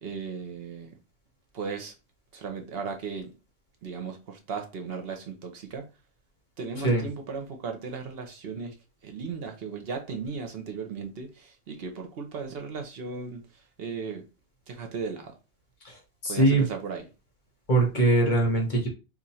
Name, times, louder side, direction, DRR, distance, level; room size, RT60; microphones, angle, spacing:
voice 1, 0.0-0.9 1.5-1.9 2.3-3.3 3.8-5.8 6.6-8.7 9.0-14.2 14.7-15.3 16.3-17.0, right 5 dB, 65° right, 0.8 m, -36 dB
voice 2, 15.8-16.7 17.7-18.9, right 2 dB, 45° left, 1.0 m, -22 dB
2.9 x 2.4 x 4.1 m
omnidirectional pair, 1.2 m